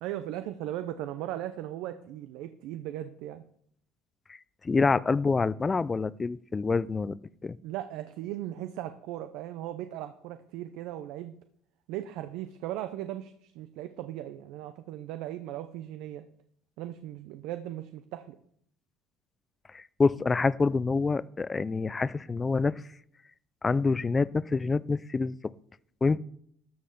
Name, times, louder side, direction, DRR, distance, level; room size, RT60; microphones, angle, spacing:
voice 1, 0.0-3.4 7.6-11.3 11.9-16.3 16.8-18.4, right 13 dB, 75° right, 10 dB, 0.6 m, -38 dB
voice 2, 4.6-7.2 7.4-7.6 19.7-22.8 23.6-25.5 26.0-26.2, left 4 dB, 20° left, 19 dB, 0.3 m, -27 dB
13.0 x 5.6 x 6.5 m, 0.69 s
cardioid pair, 135°, 0 cm